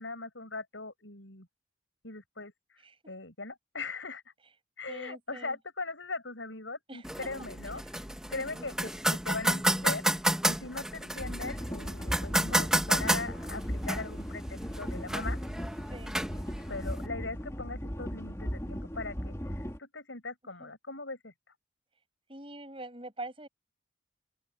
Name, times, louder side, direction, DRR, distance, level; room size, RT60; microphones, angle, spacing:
voice 1, 0.0-1.5 2.0-2.8 3.1-4.2 4.8-7.8 8.3-10.0 10.4-15.4 16.7-21.3, left 3 dB, 80° left, 6.6 m, -40 dB
voice 2, 4.9-5.6 6.9-7.0 8.5-8.7 15.9-16.2 20.6-20.7 22.3-23.5, right 2 dB, 30° right, 6.4 m, -44 dB
sound 1, 7.0-17.1, right 1 dB, 5° right, 1.8 m, -31 dB
sound 2, 11.2-19.8, equal, 15° left, 2.3 m, -37 dB
open air
head